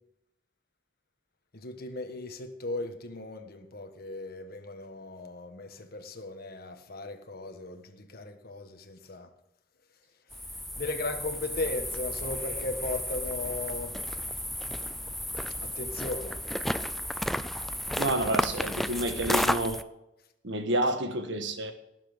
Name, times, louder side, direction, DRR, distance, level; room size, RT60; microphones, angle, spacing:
voice 1, 1.5-9.3 10.8-14.0 15.6-16.4, left 2 dB, 55° left, 1.4 m, -37 dB
sound 1, 10.3-19.8, equal, ahead, 0.4 m, -33 dB
voice 2, 17.9-19.8 20.4-21.7, right 1 dB, 70° right, 1.6 m, -29 dB
18.5 x 7.6 x 5.2 m
head